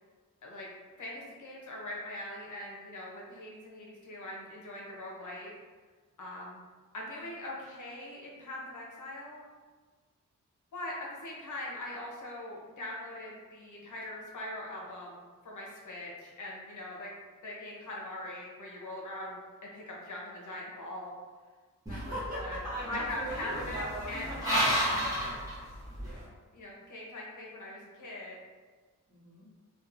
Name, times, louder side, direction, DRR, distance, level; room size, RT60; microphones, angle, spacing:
voice 1, 1.0-5.5 6.2-6.6 6.9-9.5 10.7-11.0 11.2-17.1 17.4-19.4 19.7-21.1 21.9-22.0 22.4-22.6 22.9-25.4 26.5-28.4, left 1 dB, 70° left, -3 dB, 0.7 m, -41 dB
sound 1, 21.9-26.2, equal, 10° right, 0.9 m, -33 dB
voice 2, 21.9-24.8 26.0-26.3 29.1-29.5, equal, 25° right, -10 dB, 1.2 m, -39 dB
2.8 x 2.2 x 2.4 m, 1.5 s
wide cardioid pair, 100°, 32 cm